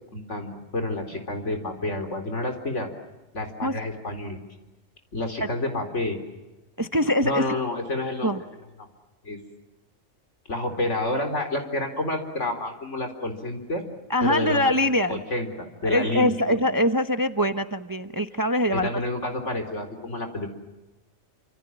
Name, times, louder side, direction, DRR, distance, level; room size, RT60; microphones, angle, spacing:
voice 1, 0.1-2.9 3.3-4.4 5.1-6.2 7.2-8.3 9.2-9.4 10.5-13.8 14.2-14.8 15.1-16.6 18.7-20.5, left 2 dB, 65° left, 6 dB, 4.4 m, -29 dB
voice 2, 6.8-7.4 8.2-8.4 14.1-15.2 15.8-18.9, left 1 dB, 20° right, 9 dB, 0.8 m, -23 dB
28.5 x 27.5 x 7.5 m, 1.1 s
omnidirectional pair, 1.3 m